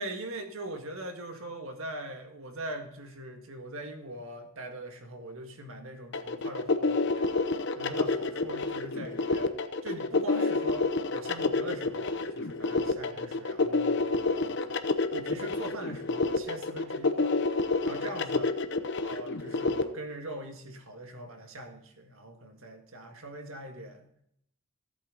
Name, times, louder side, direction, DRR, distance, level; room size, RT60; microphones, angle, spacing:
voice 1, 0.0-7.3 7.8-9.5 9.8-10.8 11.1-17.3 17.8-18.5 19.0-24.1, right 1 dB, 65° right, 5 dB, 1.8 m, -41 dB
sound 1, 6.1-19.8, left 3 dB, 55° left, 0.8 m, -28 dB
15.0 x 8.3 x 4.0 m, 0.72 s
head